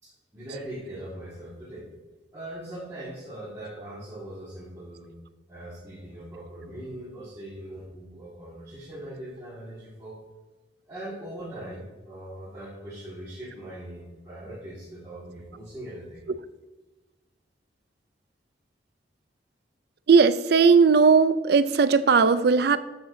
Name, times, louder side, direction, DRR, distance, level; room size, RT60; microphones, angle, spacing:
voice 1, 0.0-1.9 2.3-5.1 5.5-10.2 10.9-16.2, right 1 dB, 15° right, -9 dB, 1.9 m, -40 dB
voice 2, 20.1-22.8, right 5 dB, 60° right, 14 dB, 0.4 m, -18 dB
12.0 x 6.9 x 2.7 m, 1.2 s
head